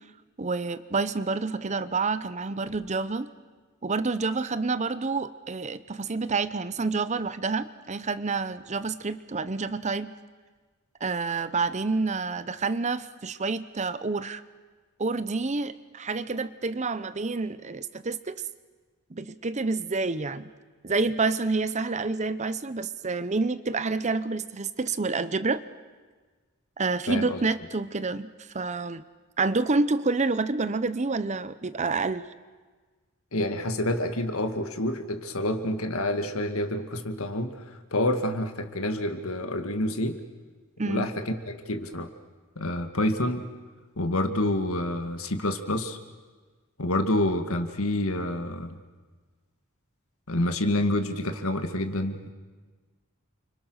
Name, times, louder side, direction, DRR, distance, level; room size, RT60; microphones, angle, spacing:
voice 1, 0.4-3.3 3.8-10.1 11.0-14.4 15.0-18.4 19.1-20.5 20.8-25.6 26.8-29.0 29.4-32.2 40.8-41.1, right 3 dB, 30° right, 14 dB, 0.7 m, -28 dB
voice 2, 27.1-27.4 33.3-40.2 40.9-42.1 42.6-43.5 44.0-46.0 46.8-48.8 50.3-52.3, left 1 dB, 70° left, 8 dB, 2.0 m, -28 dB
29.5 x 25.5 x 6.4 m, 1.4 s
head